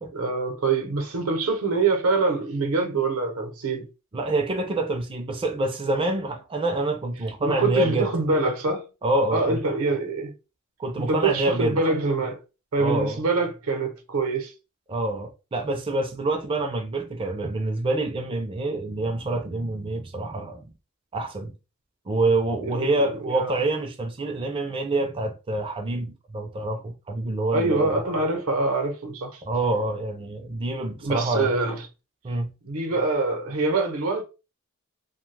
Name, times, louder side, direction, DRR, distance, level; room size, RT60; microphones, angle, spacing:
voice 1, 0.1-3.9 7.4-8.9 9.3-10.3 11.0-12.4 12.7-14.5 22.6-23.5 27.5-29.4 31.0-31.8 32.6-34.2, right 3 dB, 80° right, 0.7 m, -25 dB
voice 2, 4.1-8.1 9.0-9.6 10.8-11.8 12.8-13.2 14.9-20.7 21.1-21.5 22.1-28.0 29.5-31.5 32.2-32.5, right 2 dB, 25° right, 0.4 m, -26 dB
2.7 x 2.2 x 3.2 m
head